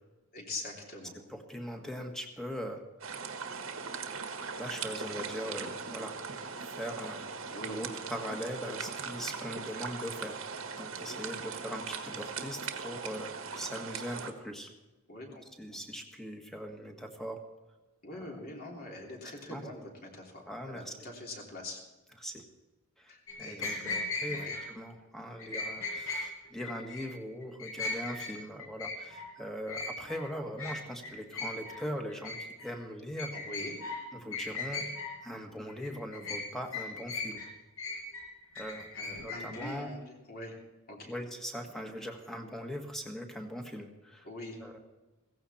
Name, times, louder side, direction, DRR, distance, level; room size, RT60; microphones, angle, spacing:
voice 1, 0.3-1.1 7.5-7.8 15.1-15.4 18.0-21.8 23.1-23.7 24.3-24.5 33.3-33.7 38.9-40.6 40.9-41.1 44.2-44.6, left 2 dB, 45° left, 0 dB, 3.1 m, -43 dB
voice 2, 1.3-2.8 4.6-6.2 6.6-7.3 7.6-10.4 10.7-14.7 15.3-17.4 18.1-18.3 19.5-19.6 20.5-20.9 22.2-22.4 23.0-33.3 34.1-34.8 35.2-37.4 38.6-38.9 39.2-39.9 41.0-44.3 44.6-44.8, equal, ahead, 3 dB, 1.6 m, -40 dB
sound 1, 3.0-14.3, right 5 dB, 70° right, 1.5 m, -40 dB
sound 2, 23.3-24.6 25.4-26.2 26.6-27.1 27.4-28.3 28.6-29.2 29.7-30.2 30.6-30.8 31.0-31.8 32.1-32.7 33.2-34.0 34.3-35.1 35.7-36.4 36.7-37.5 37.8-39.7, left 3 dB, 70° left, 6.4 m, -37 dB
16.5 x 15.0 x 4.3 m, 1.1 s
head